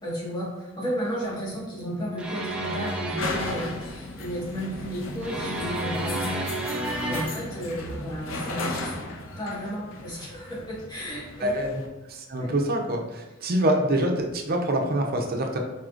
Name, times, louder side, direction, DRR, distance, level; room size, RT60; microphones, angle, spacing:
voice 1, 0.0-6.3 7.0-8.9 9.4-11.5 12.4-12.5 13.6-13.7, equal, 20° left, -8 dB, 1.5 m, -33 dB
sound 1, 1.2-11.9, left 2 dB, 70° left, 0.6 m, -36 dB
sound 2, 2.2-3.8 5.2-7.2, right 1 dB, 5° right, 0.6 m, -31 dB
voice 2, 11.4-11.8 12.1-15.6, right 1 dB, 50° right, 2 dB, 0.6 m, -25 dB
4.7 x 4.2 x 2.5 m, 1.1 s
head